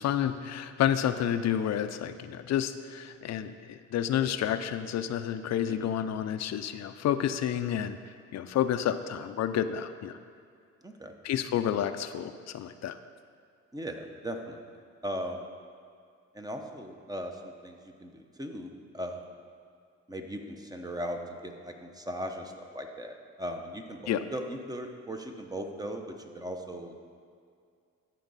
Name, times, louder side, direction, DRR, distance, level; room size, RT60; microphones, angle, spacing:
voice 1, 0.0-10.1 11.2-13.0 24.1-24.2, left 10 dB, 60° left, 10 dB, 0.5 m, -30 dB
voice 2, 13.7-14.6 15.0-15.5 16.3-19.3 20.1-26.9, equal, 10° right, 4 dB, 0.8 m, -38 dB
13.5 x 4.6 x 4.1 m, 2.3 s
cardioid pair, 90°, 30 cm